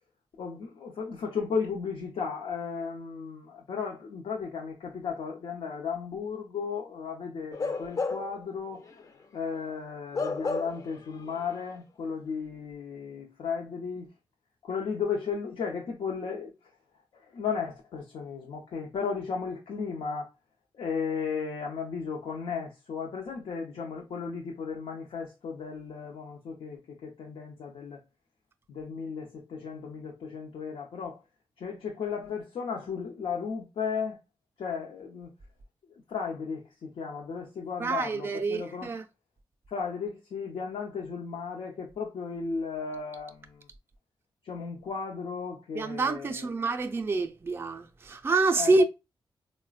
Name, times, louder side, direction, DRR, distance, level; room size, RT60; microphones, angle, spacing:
voice 1, 0.4-8.9 9.3-14.1 14.6-16.5 17.1-20.3 20.7-28.0 28.7-31.2 31.6-34.2 34.6-35.3 36.1-38.9 39.7-43.7 44.4-46.5 48.6-48.8, left 5 dB, 85° left, 0.6 m, -35 dB
Bark / Livestock farm animals working animals, 7.5-8.4 8.8-9.0 10.1-11.0 11.3-11.4, left 4 dB, 40° left, 0.4 m, -31 dB
voice 2, 37.8-39.0 45.7-48.8, right 3 dB, 25° right, 0.3 m, -27 dB
3.9 x 2.1 x 2.3 m
cardioid pair, 90°, 9 cm